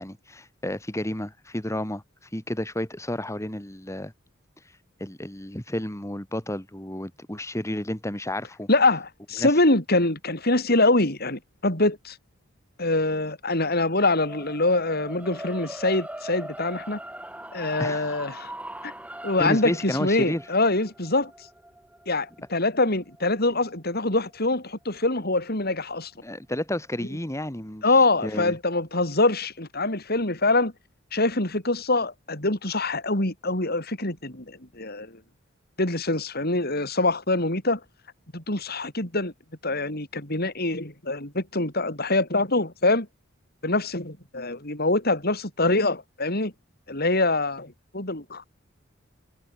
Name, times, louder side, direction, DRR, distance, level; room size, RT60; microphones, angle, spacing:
voice 1, 0.0-2.0 2.3-4.1 5.0-8.7 9.4-9.5 17.8-18.2 19.4-20.4 26.2-27.8 28.2-28.6, left 1 dB, 15° left, 3.2 m, -31 dB
voice 2, 8.7-12.2 12.8-17.0 17.5-18.5 18.8-18.9 19.2-21.3 22.1-26.1 27.8-30.7 31.1-35.1 35.8-37.8 38.3-39.3 39.6-43.1 43.6-46.5 46.9-48.5, left 2 dB, 55° left, 7.3 m, -24 dB
sound 1, 14.1-24.3, right 1 dB, 5° right, 7.3 m, -41 dB
head